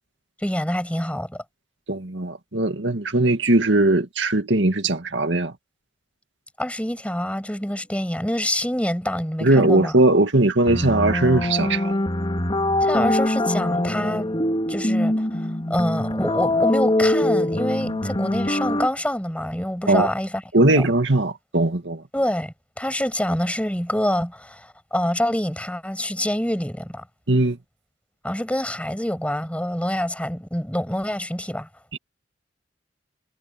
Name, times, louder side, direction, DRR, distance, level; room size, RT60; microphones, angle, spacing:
voice 1, 0.4-1.4 6.6-10.0 12.8-14.3 14.7-20.9 22.1-27.0 28.2-31.7, left 1 dB, 5° left, 6.8 m, -26 dB
voice 2, 1.9-5.5 9.4-11.9 19.9-20.1 20.5-22.0 27.3-27.6 31.9-32.0, right 2 dB, 80° right, 2.1 m, -19 dB
sound 1, 10.7-18.9, left 1 dB, 30° left, 3.5 m, -23 dB
head